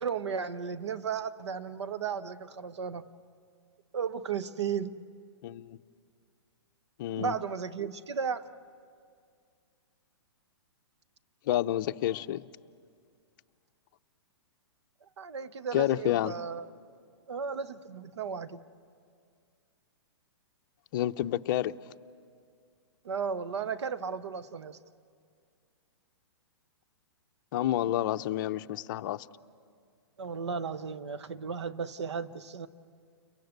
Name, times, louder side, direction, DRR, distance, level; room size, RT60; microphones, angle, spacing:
voice 1, 0.0-3.1 3.9-5.0 7.2-8.5 15.2-16.7 17.3-18.6 23.0-24.8 30.2-32.7, right 6 dB, 80° right, 13 dB, 1.1 m, -34 dB
voice 2, 5.4-5.8 7.0-7.3 11.5-12.4 15.7-16.3 20.9-21.7 27.5-29.3, left 13 dB, 45° left, 9 dB, 0.6 m, -29 dB
30.0 x 23.0 x 8.1 m, 2.2 s
hypercardioid pair, 145°, 14 cm